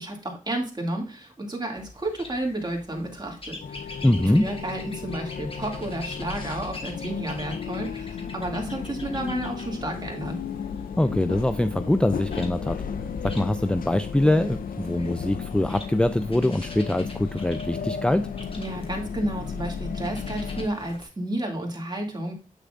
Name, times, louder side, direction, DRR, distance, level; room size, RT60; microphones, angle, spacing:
voice 1, 0.0-10.4 18.6-22.3, right 1 dB, 30° right, 1 dB, 2.3 m, -32 dB
sound 1, 1.7-21.0, left 2 dB, 40° left, 1.6 m, -45 dB
sound 2, 3.6-20.7, left 6 dB, 90° left, 0.5 m, -34 dB
voice 2, 4.0-4.5 11.0-12.8 13.2-18.3, left 1 dB, 5° left, 10 dB, 0.4 m, -23 dB
8.2 x 6.6 x 2.5 m, 0.31 s
wide cardioid pair, 75°, 14 cm